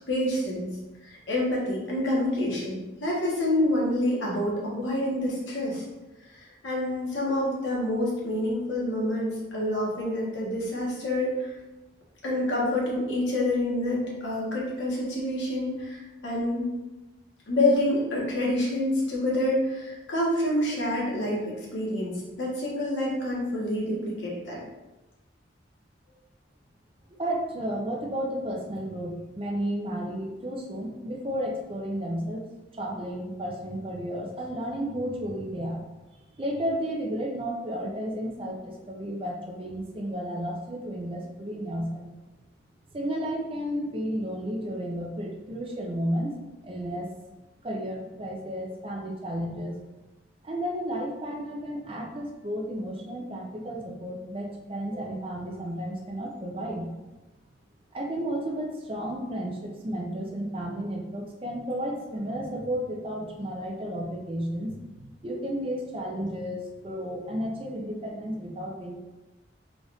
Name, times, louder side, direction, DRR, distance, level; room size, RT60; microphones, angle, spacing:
voice 1, 0.1-5.8 6.3-11.5 12.2-16.6 17.5-24.6, left 1 dB, 90° left, -4 dB, 1.3 m, -27 dB
voice 2, 27.2-32.4 32.7-35.9 36.1-42.1 42.9-46.4 46.6-47.1 47.6-49.8 50.4-56.9 57.9-68.9, equal, 30° right, 0 dB, 0.5 m, -32 dB
3.9 x 2.5 x 3.4 m, 1.1 s
head